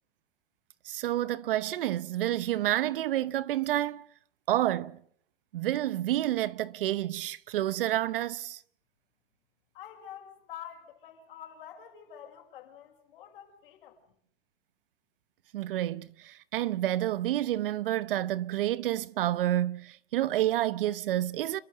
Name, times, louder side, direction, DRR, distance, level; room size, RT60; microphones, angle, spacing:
voice 1, 0.8-4.1 4.5-5.0 5.5-8.6 15.5-21.6, right 13 dB, 60° right, 0.9 m, -29 dB
voice 2, 9.7-14.0, left 9 dB, 60° left, 6.4 m, -47 dB
30.0 x 13.0 x 8.0 m
supercardioid pair, 170°, 30 cm